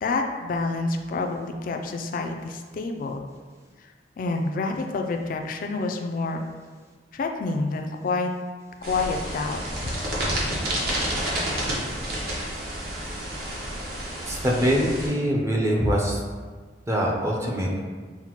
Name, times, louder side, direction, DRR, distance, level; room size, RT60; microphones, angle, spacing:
voice 1, 0.0-3.3 4.2-6.4 7.1-8.3 8.8-9.9, left 3 dB, 50° left, 4 dB, 0.3 m, -28 dB
sound 1, 8.8-15.1, right 1 dB, 60° right, 0.9 m, -29 dB
voice 2, 14.3-16.2 16.9-17.9, equal, 15° right, -2 dB, 0.5 m, -23 dB
5.8 x 2.1 x 2.9 m, 1.5 s
head